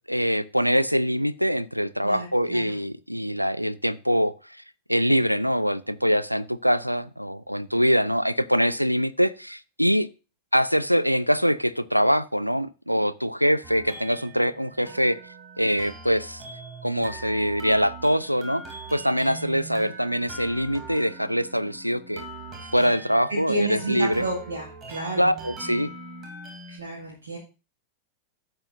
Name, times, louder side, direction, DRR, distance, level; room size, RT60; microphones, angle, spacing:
voice 1, 0.1-4.6 4.9-10.1 10.5-15.2 15.6-16.4 16.8-18.6 18.9-22.3 22.7-24.3 25.2-25.9, equal, 90° right, 18 dB, 0.4 m, -23 dB
voice 2, 2.0-2.7 23.5-25.3 26.7-27.4, right 2 dB, 70° right, -1 dB, 1.7 m, -31 dB
sound 1, 13.6-26.8, right 3 dB, 30° right, 3.0 m, -42 dB
12.0 x 7.9 x 2.6 m, 0.31 s
figure-of-eight pair, 90°, 0 cm